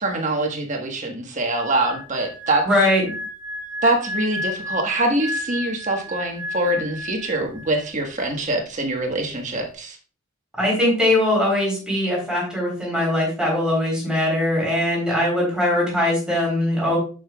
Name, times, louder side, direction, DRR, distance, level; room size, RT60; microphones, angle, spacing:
voice 1, 0.0-2.7 3.8-10.0, right 2 dB, 35° right, 2 dB, 1.4 m, -24 dB
sound 1, 1.5-7.9 8.1-8.4, left 1 dB, 25° left, 1.7 m, -32 dB
voice 2, 2.7-3.0 10.6-17.0, left 1 dB, 5° right, -4 dB, 3.9 m, -21 dB
10.5 x 6.6 x 2.4 m, 0.37 s
head